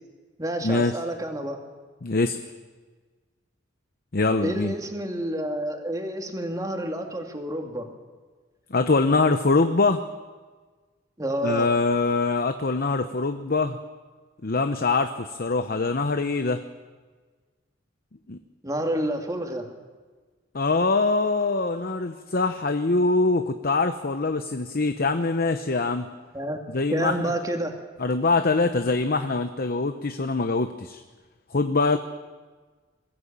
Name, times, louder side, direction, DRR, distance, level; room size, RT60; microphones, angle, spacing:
voice 1, 0.4-1.6 4.4-7.9 11.2-11.7 18.6-19.7 26.3-26.6 26.9-27.8, right 1 dB, 20° right, 3 dB, 2.4 m, -29 dB
voice 2, 2.0-2.4 4.1-4.7 8.7-10.0 11.4-13.8 14.4-16.6 18.3-18.4 20.5-26.1 26.7-27.3 28.0-31.0 31.5-32.0, left 3 dB, 50° left, 8 dB, 0.8 m, -23 dB
22.0 x 15.5 x 8.7 m, 1.4 s
head